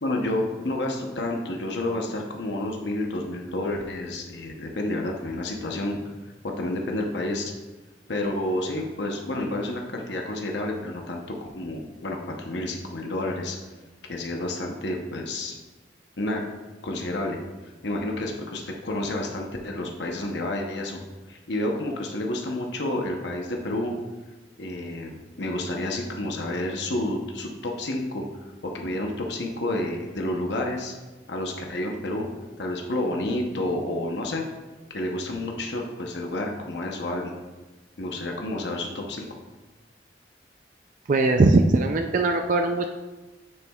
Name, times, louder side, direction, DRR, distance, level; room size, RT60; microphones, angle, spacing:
voice 1, 0.0-6.0 6.6-7.5 8.1-13.6 14.1-15.5 16.2-16.4 16.8-17.4 17.8-21.0 21.3-23.9 24.6-28.2 28.7-31.0 31.3-32.3 32.6-34.4 34.9-37.3 38.0-39.3, left 1 dB, 75° left, 1 dB, 0.9 m, -30 dB
voice 2, 41.1-42.9, right 3 dB, 45° right, 5 dB, 0.4 m, -20 dB
9.7 x 7.0 x 2.3 m, 1.2 s
head